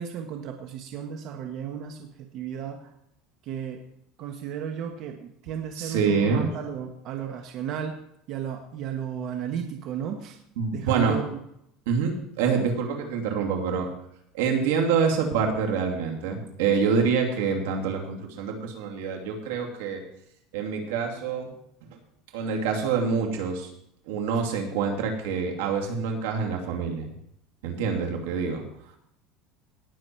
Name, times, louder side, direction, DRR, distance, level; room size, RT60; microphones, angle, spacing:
voice 1, 0.0-2.9 3.4-3.8 4.2-8.0 8.3-10.4 10.7-11.4, right 8 dB, 50° right, 4 dB, 1.3 m, -34 dB
voice 2, 5.8-6.5 10.6-11.2 11.9-13.9 14.3-20.0 20.5-21.5 21.9-22.0 22.3-23.7 24.1-27.1 27.6-28.6, right 5 dB, 90° right, 2 dB, 2.6 m, -26 dB
18.0 x 7.0 x 4.6 m, 0.76 s
supercardioid pair, 140°, 0 cm